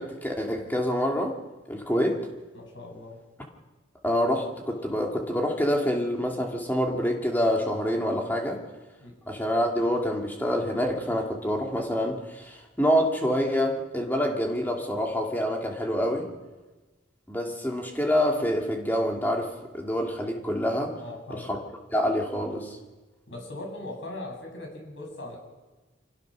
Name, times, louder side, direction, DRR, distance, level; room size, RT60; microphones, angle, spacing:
voice 1, 0.0-1.4 1.7-2.2 4.0-8.6 9.3-16.3 17.3-21.0 21.3-21.6 21.9-22.8, equal, 10° left, 1 dB, 2.5 m, -26 dB
voice 2, 2.5-3.2 9.0-9.1 21.0-21.5 23.3-25.4, left 2 dB, 75° left, 1 dB, 6.9 m, -39 dB
24.5 x 17.5 x 6.4 m, 1.2 s
head